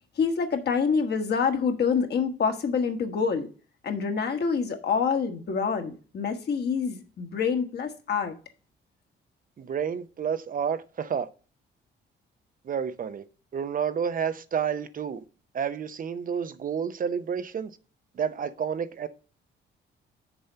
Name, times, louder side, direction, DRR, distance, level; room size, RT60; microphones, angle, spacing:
voice 1, 0.2-3.5 3.8-8.3, left 6 dB, 55° left, 1.5 m, -26 dB
voice 2, 9.6-11.3 12.6-13.2 13.5-15.2 15.5-17.7 18.1-19.1, right 7 dB, 45° right, 0.6 m, -30 dB
6.9 x 4.3 x 6.6 m
cardioid pair, 90°, 20 cm